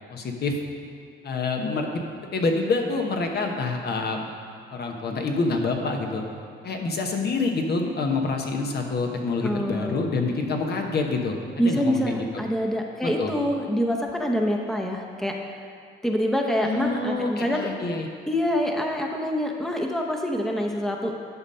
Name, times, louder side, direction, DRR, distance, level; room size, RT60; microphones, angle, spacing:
voice 1, 0.1-0.6 1.2-2.1 2.3-4.3 4.7-6.2 6.6-12.4 13.0-13.3 16.6-18.1, left 3 dB, 55° left, 2 dB, 1.0 m, -27 dB
voice 2, 9.4-10.1 11.6-15.3 16.0-17.7 18.3-21.1, equal, ahead, 1 dB, 0.8 m, -26 dB
11.0 x 4.2 x 5.4 m, 2.4 s
cardioid pair, 90°, 20 cm